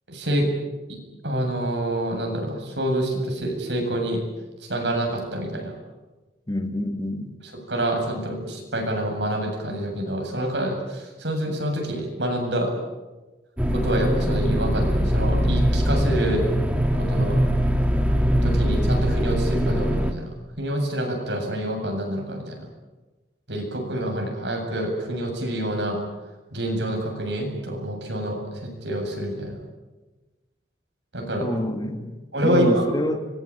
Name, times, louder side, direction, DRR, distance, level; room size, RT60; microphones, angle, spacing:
voice 1, 0.1-0.5 0.9-1.0 1.2-4.2 4.7-5.7 7.7-12.7 13.7-16.4 17.0-17.4 18.4-20.2 20.6-22.7 23.5-26.0 26.5-29.6 31.1-31.5 32.3-32.8, right 1 dB, 75° right, 2 dB, 8.0 m, -27 dB
voice 2, 6.5-7.4 31.4-32.2 32.4-33.3, left 1 dB, 20° left, 7 dB, 2.1 m, -27 dB
sound 1, 13.6-20.1, equal, 5° right, 2.1 m, -22 dB
25.5 x 22.5 x 8.9 m, 1.2 s
head